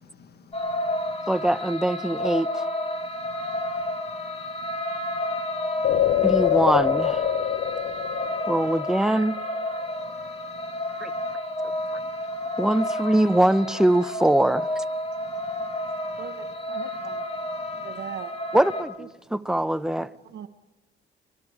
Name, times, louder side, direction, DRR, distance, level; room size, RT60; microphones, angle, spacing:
voice 1, 0.0-1.3 3.0-4.8 5.1-6.1 7.8-8.5 10.0-11.3 11.7-12.6 15.2-16.5 16.9-17.2 17.5-18.0, left 7 dB, 55° left, 1.2 m, -53 dB
sound 1, 0.5-18.8, left 1 dB, 30° left, 2.5 m, -31 dB
voice 2, 1.3-2.6 6.2-7.2 8.5-9.4 11.0-11.1 12.6-14.8 18.5-20.1, right 1 dB, 5° right, 0.6 m, -22 dB
sound 2, 5.8-9.5 9.9-10.0, left 12 dB, 75° left, 0.9 m, -25 dB
voice 3, 16.2-17.2 17.8-18.3 20.0-20.5, right 9 dB, 60° right, 0.9 m, -39 dB
24.0 x 22.5 x 4.9 m
cardioid pair, 90°, 20 cm